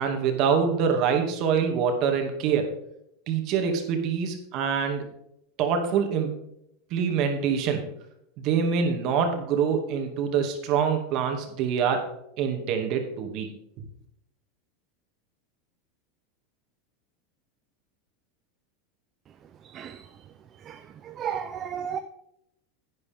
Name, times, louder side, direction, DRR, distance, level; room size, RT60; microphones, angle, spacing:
voice 1, 0.0-2.7 3.3-5.0 5.6-6.3 6.9-7.8 8.4-12.0 12.4-13.5, right 6 dB, 50° right, 4 dB, 2.5 m, -25 dB
voice 2, 21.2-22.0, right 8 dB, 35° right, 8 dB, 0.7 m, -32 dB
11.0 x 9.4 x 3.7 m, 0.79 s
supercardioid pair, 125°, 0 cm